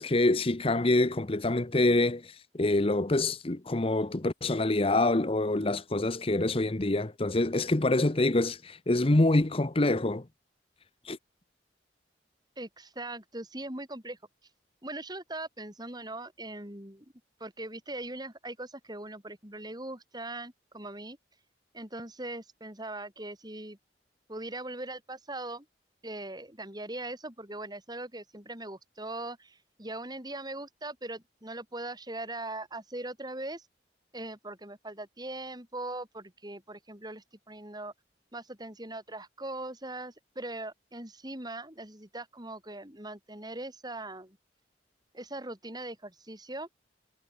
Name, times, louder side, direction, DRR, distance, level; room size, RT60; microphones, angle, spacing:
voice 1, 0.0-10.2 11.0-11.2, left 2 dB, 30° left, 0.9 m, -26 dB
voice 2, 12.6-14.2 14.8-17.1 17.4-21.2 21.7-23.8 24.3-25.7 26.0-33.7 34.1-37.9 38.3-44.4 45.1-46.7, right 2 dB, 20° right, 7.5 m, -40 dB
head